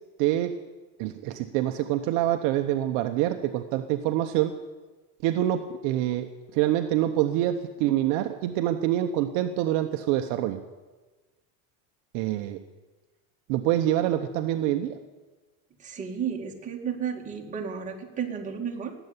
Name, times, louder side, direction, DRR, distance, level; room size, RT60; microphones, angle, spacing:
voice 1, 0.2-0.6 1.0-4.6 5.2-10.6 12.1-12.6 13.5-15.0, right 13 dB, 55° right, 6 dB, 1.0 m, -26 dB
voice 2, 15.8-18.9, right 7 dB, 20° right, 0 dB, 2.1 m, -33 dB
18.0 x 8.1 x 9.7 m, 1.2 s
cardioid pair, 160°, 38 cm